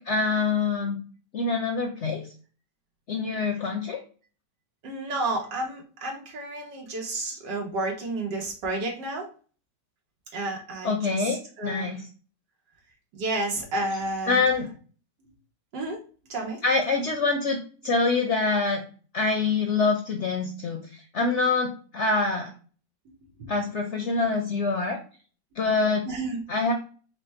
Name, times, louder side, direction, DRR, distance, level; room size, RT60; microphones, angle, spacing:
voice 1, 0.1-1.0 1.3-2.2 3.1-4.0 10.8-12.1 14.3-14.7 16.6-17.6 17.8-18.8 19.1-22.5 23.5-25.0 25.6-26.0 26.5-26.7, left 4 dB, 55° left, 3 dB, 0.8 m, -25 dB
voice 2, 4.8-9.3 10.3-12.0 13.1-14.5 15.7-16.0 16.3-16.6 23.1-23.5 26.1-26.4, right 2 dB, 90° right, 0 dB, 1.9 m, -31 dB
5.0 x 2.2 x 4.3 m, 0.39 s
omnidirectional pair, 1.8 m